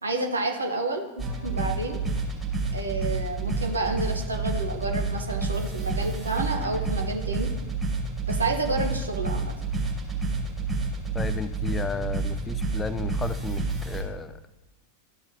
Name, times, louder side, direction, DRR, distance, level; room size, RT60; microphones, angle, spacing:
voice 1, 0.0-2.0 2.7-7.5 8.3-9.5, right 2 dB, 75° right, 3 dB, 1.0 m, -30 dB
sound 1, 1.2-14.0, right 3 dB, 15° right, 3.0 m, -29 dB
voice 2, 11.1-14.4, left 4 dB, 15° left, 13 dB, 0.3 m, -33 dB
13.5 x 5.8 x 2.7 m, 1.1 s
figure-of-eight pair, 90°, 0 cm